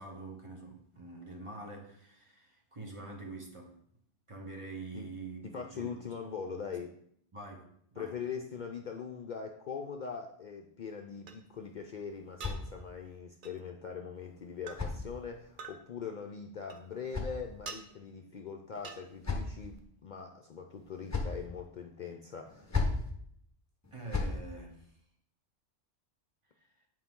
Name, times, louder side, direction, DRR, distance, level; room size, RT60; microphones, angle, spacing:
voice 1, 0.0-3.8 4.3-6.0 7.3-8.1 23.9-24.9, right 3 dB, 30° right, 1 dB, 1.1 m, -45 dB
voice 2, 5.5-6.9 8.0-22.7, left 6 dB, 55° left, 3 dB, 0.6 m, -42 dB
sound 1, 10.0-10.1 11.3-11.4 12.4-12.6 13.4-13.6 14.6-14.8 15.6-15.8 16.7-17.2 17.6-17.8 18.8-19.0, right 5 dB, 55° right, 0.7 m, -44 dB
sound 2, 11.5-13.2 14.2-15.6 16.6-17.9 18.7-19.8 20.7-21.5 22.5-23.1 23.8-24.4, left 3 dB, 15° left, 0.8 m, -37 dB
8.4 x 4.7 x 3.7 m, 0.68 s
omnidirectional pair, 1.2 m